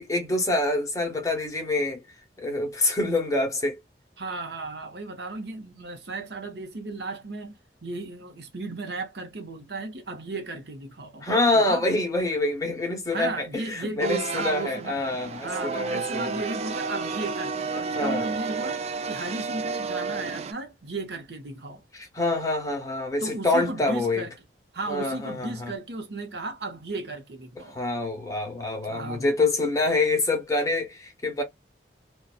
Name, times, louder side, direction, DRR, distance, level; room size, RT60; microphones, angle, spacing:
voice 1, 0.0-2.0 2.4-3.8 11.2-16.4 17.9-18.3 21.9-24.2 24.9-25.7 27.7-31.4, left 2 dB, 20° left, 0.9 m, -26 dB
voice 2, 4.2-11.3 11.6-11.9 13.1-15.0 15.4-21.8 23.2-24.3 24.7-27.8 28.8-29.3, right 3 dB, 70° right, 0.8 m, -35 dB
sound 1, 14.0-20.5, right 4 dB, 35° right, 0.3 m, -31 dB
2.6 x 2.3 x 2.4 m
head